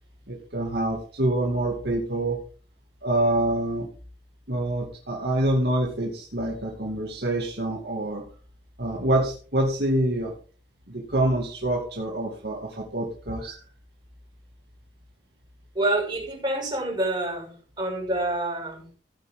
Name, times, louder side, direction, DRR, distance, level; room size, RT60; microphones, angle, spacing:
voice 1, 0.3-2.4 3.0-3.9 4.5-8.2 8.8-10.3 10.9-13.6, right 1 dB, 60° right, -1 dB, 2.4 m, -26 dB
voice 2, 15.7-17.5 17.8-19.0, right 1 dB, 25° right, -1 dB, 6.3 m, -27 dB
16.5 x 9.7 x 3.8 m, 0.41 s
head